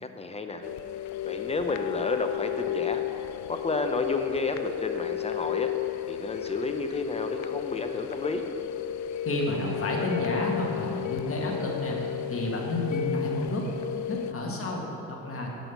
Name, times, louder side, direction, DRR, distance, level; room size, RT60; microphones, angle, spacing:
voice 1, 0.0-0.6 1.2-3.0 3.5-5.7 6.1-8.4, left 3 dB, 20° left, 6 dB, 0.7 m, -31 dB
sound 1, 0.6-14.3, left 12 dB, 65° left, 0.4 m, -33 dB
voice 2, 9.2-12.0 12.3-13.6 14.1-15.5, left 1 dB, 45° left, -1 dB, 1.9 m, -30 dB
7.6 x 6.2 x 6.9 m, 2.8 s
cardioid pair, 90°, 30 cm